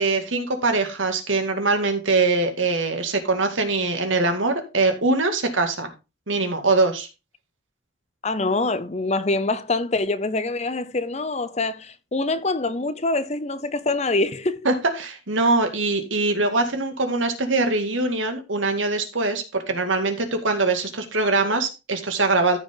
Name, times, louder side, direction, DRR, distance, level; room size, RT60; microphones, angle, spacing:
voice 1, 0.0-5.9 6.3-7.1 14.7-22.6, right 3 dB, 75° right, 2.1 m, -22 dB
voice 2, 8.2-14.7, left 2 dB, 35° left, 0.7 m, -25 dB
14.0 x 5.2 x 3.9 m
head